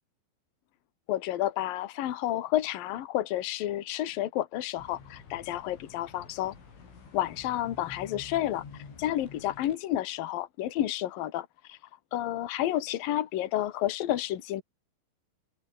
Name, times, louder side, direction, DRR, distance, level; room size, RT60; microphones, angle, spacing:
voice 1, 1.1-6.5 7.1-11.8 12.1-14.6, left 13 dB, 55° left, 3.0 m, -30 dB
sound 1, 4.8-9.8, left 5 dB, 75° left, 9.3 m, -49 dB
omnidirectional pair, 5.6 m